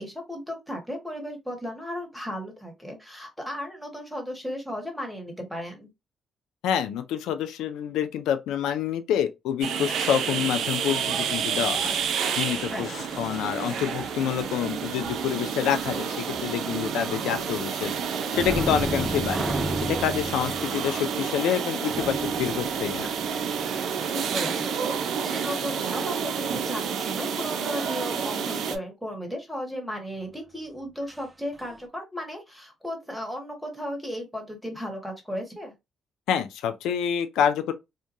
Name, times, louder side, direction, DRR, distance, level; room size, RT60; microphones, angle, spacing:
voice 1, 0.0-5.9 12.7-13.1 24.1-24.8 25.2-35.7, equal, ahead, 1.3 m, -35 dB
voice 2, 6.6-12.0 12.4-12.9 13.2-17.9 18.3-19.5 19.9-23.1 36.3-37.7, left 9 dB, 90° left, 0.4 m, -27 dB
sound 1, 9.6-28.8, right 7 dB, 75° right, 0.4 m, -29 dB
sound 2, 10.9-19.8, left 2 dB, 65° left, 1.1 m, -48 dB
sound 3, 18.3-23.7 31.1-31.2 31.6-31.8, right 1 dB, 15° right, 0.5 m, -33 dB
2.8 x 2.2 x 2.5 m
cardioid pair, 90°, 0 cm